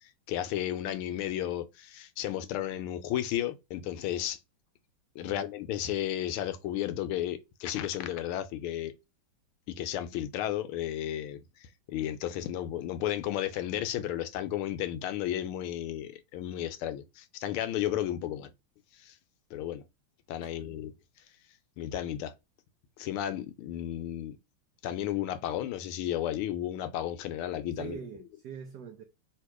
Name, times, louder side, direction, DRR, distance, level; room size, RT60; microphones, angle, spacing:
voice 1, 0.0-4.4 5.1-8.9 9.8-18.5 19.0-19.1 19.5-19.8 20.3-20.9 21.8-22.3 23.0-24.4 24.8-28.0, left 12 dB, 80° left, 1.4 m, -33 dB
voice 2, 20.4-20.8 27.8-29.0, right 8 dB, 80° right, 0.8 m, -44 dB
3.5 x 2.9 x 4.6 m
omnidirectional pair, 2.4 m